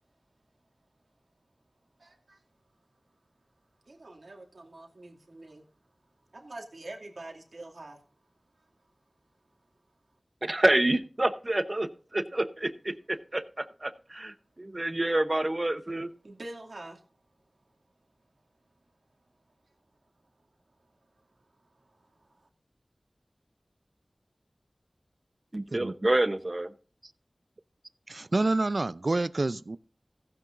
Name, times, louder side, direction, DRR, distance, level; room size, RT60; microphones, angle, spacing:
voice 1, 2.0-2.4 3.9-5.6 6.3-8.0 16.2-17.0 21.9-22.5, right 2 dB, 85° right, 2.4 m, -45 dB
voice 2, 10.4-16.1 25.5-26.7, right 1 dB, 40° right, 0.9 m, -28 dB
voice 3, 28.1-29.8, right 2 dB, 65° right, 0.5 m, -28 dB
15.5 x 9.5 x 2.6 m
wide cardioid pair, 45°, 0 cm